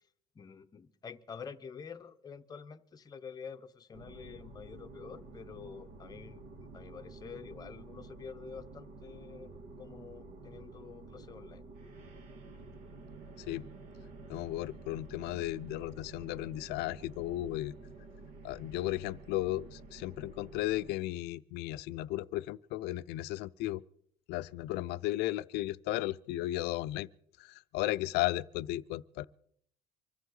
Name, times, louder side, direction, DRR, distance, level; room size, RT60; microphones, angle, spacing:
voice 1, 0.3-6.4 6.7-11.6, left 6 dB, 20° left, 0.8 m, -48 dB
sound 1, 3.9-20.9, right 3 dB, 60° right, 1.9 m, -50 dB
voice 2, 14.3-17.7 18.4-23.8 24.3-27.1 27.4-29.2, left 16 dB, 70° left, 0.6 m, -35 dB
25.0 x 14.5 x 3.9 m
cardioid pair, 155°, 18 cm